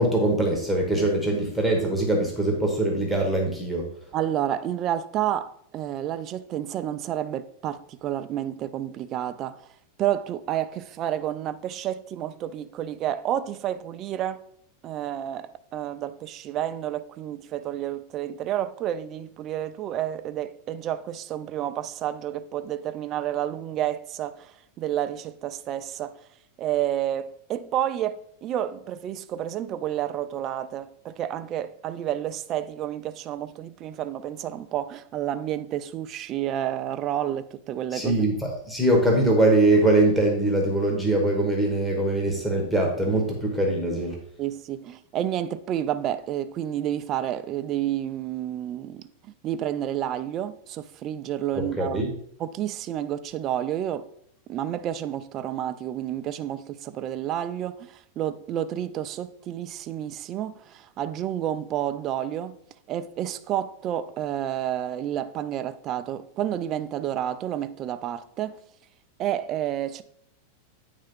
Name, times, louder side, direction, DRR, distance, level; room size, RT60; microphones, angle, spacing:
voice 1, 0.0-3.9 37.9-44.2 51.6-52.1, right 1 dB, ahead, 0.9 m, -22 dB
voice 2, 4.1-9.6 10.0-14.4 14.8-26.1 26.6-38.1 44.4-49.1 49.4-52.0 52.4-54.1 54.5-62.6 62.9-68.6 69.2-70.0, right 11 dB, 25° right, 0.3 m, -30 dB
8.9 x 3.3 x 5.1 m
supercardioid pair, 175°, 0 cm